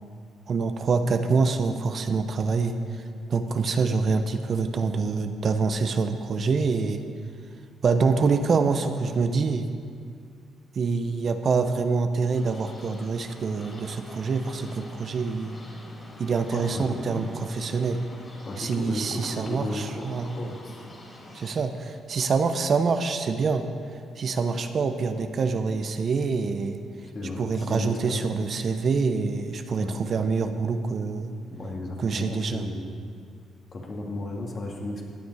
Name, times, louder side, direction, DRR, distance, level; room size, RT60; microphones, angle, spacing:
voice 1, 0.5-3.0 3.3-7.0 7.8-9.7 10.7-15.6 16.2-18.0 18.6-20.3 21.3-23.6 24.2-26.8 27.4-31.3 32.0-32.6, right 4 dB, 50° right, 8 dB, 0.8 m, -26 dB
sound 1, 12.3-21.5, left 1 dB, 25° left, 3.4 m, -46 dB
voice 2, 16.5-17.2 18.4-20.8 27.1-28.3 29.8-30.0 31.5-32.9 33.7-35.0, left 2 dB, 45° left, -1 dB, 2.4 m, -34 dB
16.5 x 9.4 x 4.9 m, 2.2 s
cardioid pair, 90°, 0 cm